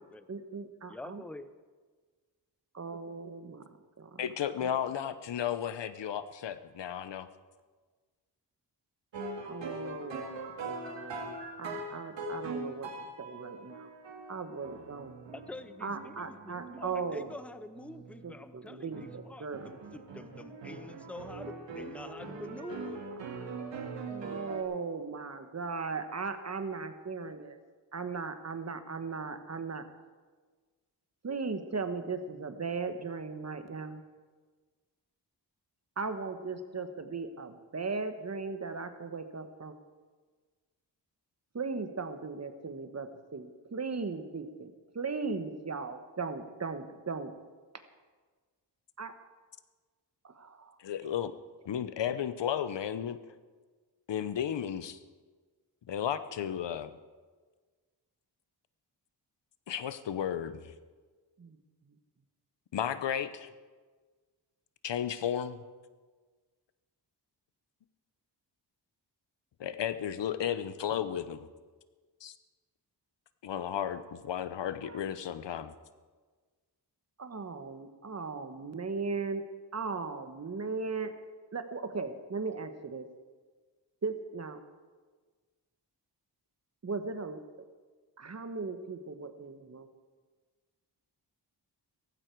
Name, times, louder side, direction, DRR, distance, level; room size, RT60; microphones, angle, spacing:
voice 1, 0.3-1.2 2.7-4.2 4.6-4.7 9.4-12.9 13.2-13.9 14.3-15.1 15.8-17.3 18.2-19.7 23.2-27.6 27.9-29.8 31.2-34.0 36.0-39.7 41.5-47.3 49.0-49.1 50.2-50.8 61.4-61.6 61.9-62.0 74.8-75.0 77.2-79.4 79.7-81.1 81.5-83.1 84.0-84.6 86.8-87.7 88.2-89.9, right 4 dB, 35° right, 9 dB, 1.2 m, -38 dB
voice 2, 0.9-1.5 15.3-23.0, left 2 dB, 5° left, 12 dB, 0.6 m, -46 dB
voice 3, 4.2-7.3 50.8-51.3 51.6-53.2 54.1-55.0 55.9-56.9 59.7-60.7 62.7-63.5 64.8-65.6 69.6-71.5 72.2-72.3 73.4-75.7, left 9 dB, 75° left, 13 dB, 0.9 m, -33 dB
sound 1, 9.1-18.5 18.9-19.2 19.5-24.6, right 3 dB, 90° right, 2.3 m, -42 dB
17.0 x 15.0 x 4.7 m, 1.4 s
wide cardioid pair, 115°, 43 cm